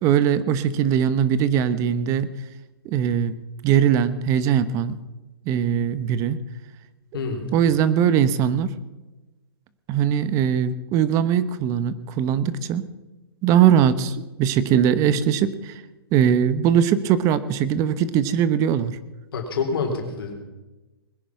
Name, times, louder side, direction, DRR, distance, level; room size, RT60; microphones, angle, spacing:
voice 1, 0.0-2.3 2.8-3.4 3.6-5.0 5.5-6.4 7.5-8.7 9.9-12.9 13.4-15.8 16.1-19.0, right 9 dB, 25° right, 15 dB, 0.9 m, -20 dB
voice 2, 7.1-7.5 19.3-20.3, left 4 dB, 65° left, 2 dB, 3.6 m, -27 dB
21.0 x 10.0 x 5.9 m, 1.1 s
hypercardioid pair, 150°, 13 cm